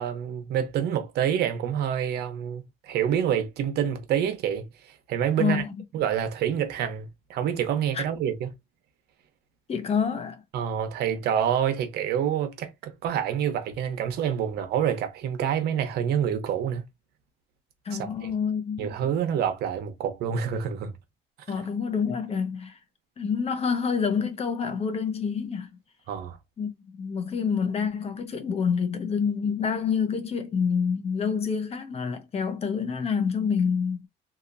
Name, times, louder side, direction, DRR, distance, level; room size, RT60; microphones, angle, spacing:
voice 1, 0.0-4.7 5.1-5.6 5.9-8.5 10.5-16.8 18.2-18.3 18.8-20.9 26.1-26.4, right 9 dB, 75° right, 0.9 m, -27 dB
voice 2, 5.4-5.7 7.9-8.0 9.7-10.4 17.9-18.9 21.5-22.8 23.2-25.7 26.6-26.7 27.0-34.1, left 6 dB, 35° left, 0.8 m, -27 dB
2.9 x 2.7 x 2.6 m
cardioid pair, 110°, 17 cm